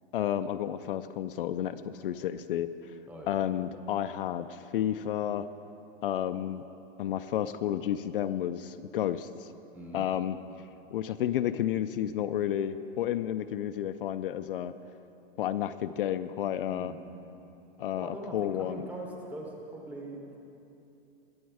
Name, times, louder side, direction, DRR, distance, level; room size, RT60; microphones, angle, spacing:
voice 1, 0.1-2.7 3.3-5.5 6.0-6.6 7.0-9.5 9.9-10.4 10.9-14.7 15.4-16.9 17.8-18.9, left 11 dB, 60° left, 11 dB, 0.5 m, -31 dB
voice 2, 3.1-3.4 9.7-10.1 16.6-17.0 17.9-20.4, right 1 dB, 5° right, -1 dB, 0.7 m, -42 dB
20.5 x 7.2 x 4.8 m, 2.9 s
supercardioid pair, 170°, 31 cm